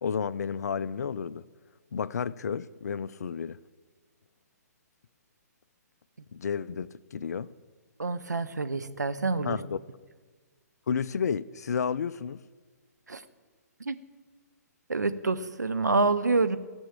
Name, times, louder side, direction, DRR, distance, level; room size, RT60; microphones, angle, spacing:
voice 1, 0.0-1.4 1.9-3.6 6.3-7.5 9.4-9.8 10.9-12.4, left 6 dB, 70° left, 0.4 m, -31 dB
voice 2, 8.0-9.6 13.1-13.2 13.9-14.0 14.9-16.6, right 3 dB, 90° right, 0.8 m, -27 dB
15.5 x 6.3 x 7.1 m
figure-of-eight pair, 130°, 9 cm